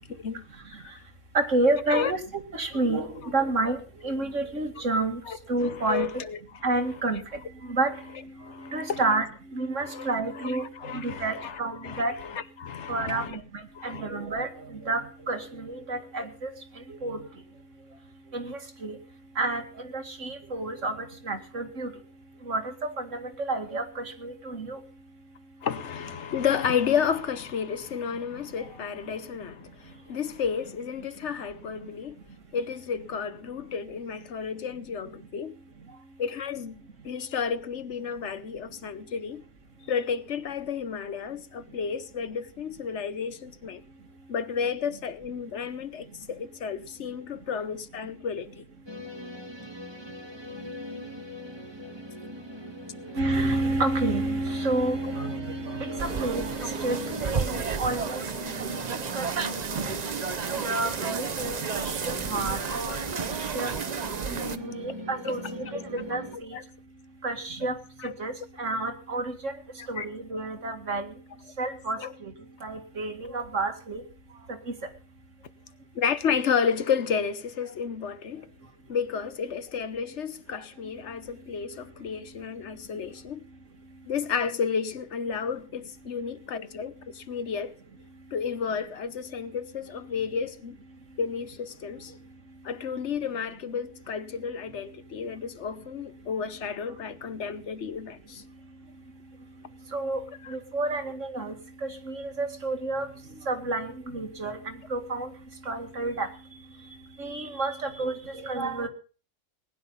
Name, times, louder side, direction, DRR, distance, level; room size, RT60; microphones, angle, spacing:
voice 1, 1.3-2.2 2.5-5.2 5.5-6.1 6.6-7.2 7.7-8.0 8.7-9.3 9.5-10.6 10.9-12.1 12.9-13.4 13.8-15.0 15.3-16.5 17.0-17.2 18.3-19.0 19.4-19.6 19.9-21.9 22.5-24.8 53.2-57.0 57.3-58.2 58.5-58.8 59.1-59.5 60.6-63.0 63.5-63.7 64.3-65.7 65.9-66.6 67.2-67.7 68.2-68.3 68.6-69.5 69.9-71.1 71.6-72.3 72.6-74.0 99.9-100.2 100.5-101.5 101.8-103.1 103.5-105.3 105.7-106.3 107.2-108.9, right 2 dB, 65° right, 2.6 m, -29 dB
voice 2, 5.6-6.4 7.0-7.1 8.4-9.0 9.7-13.3 13.7-14.0 25.6-32.2 32.5-35.6 36.2-36.8 37.0-39.4 39.9-43.8 44.3-48.6 55.0-55.1 65.2-66.1 66.5-66.6 68.0-68.1 70.0-70.1 72.0-72.1 75.9-78.5 78.9-83.4 84.0-87.8 88.3-90.8 91.2-92.1 92.6-98.4 100.4-100.6, left 7 dB, 60° left, 1.2 m, -32 dB
sound 1, 48.9-66.4, right 1 dB, 20° right, 1.5 m, -41 dB
sound 2, 56.0-64.6, right 5 dB, 40° right, 0.8 m, -32 dB
20.0 x 10.0 x 5.6 m
omnidirectional pair, 1.4 m